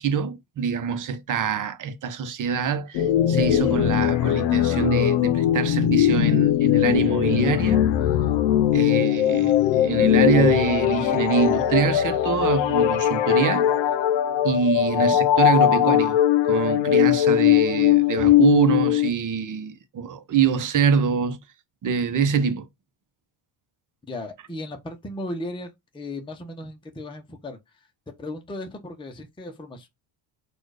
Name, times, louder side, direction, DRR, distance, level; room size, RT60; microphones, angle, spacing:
voice 1, 0.0-7.8 8.7-13.7 14.4-21.4 21.8-22.7, right 7 dB, 40° right, 0.9 m, -25 dB
sound 1, 2.9-19.1, left 11 dB, 70° left, 0.7 m, -20 dB
voice 2, 24.1-27.9 28.2-29.9, left 1 dB, 10° left, 0.8 m, -36 dB
4.3 x 2.5 x 4.8 m
cardioid pair, 120°, 46 cm